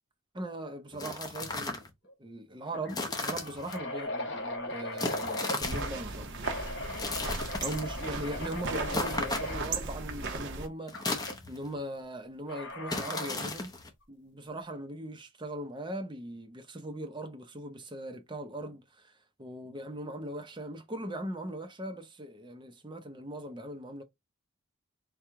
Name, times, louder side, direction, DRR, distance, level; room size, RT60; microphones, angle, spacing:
voice 1, 0.3-1.9 2.2-6.4 7.6-13.7 14.1-24.0, right 1 dB, 20° right, 0.6 m, -40 dB
sound 1, 0.9-1.9 2.9-3.8 5.0-5.9 6.9-7.9 8.9-9.8 10.9-11.7 12.9-13.9, left 2 dB, 15° left, 0.7 m, -35 dB
sound 2, 1.5-1.8 2.1-2.2 2.7-6.0 6.4-9.6 10.9-11.4 12.5-13.4, left 1 dB, 55° left, 1.4 m, -39 dB
sound 3, 5.6-10.7, right 3 dB, 55° right, 0.9 m, -37 dB
4.5 x 2.3 x 3.6 m
head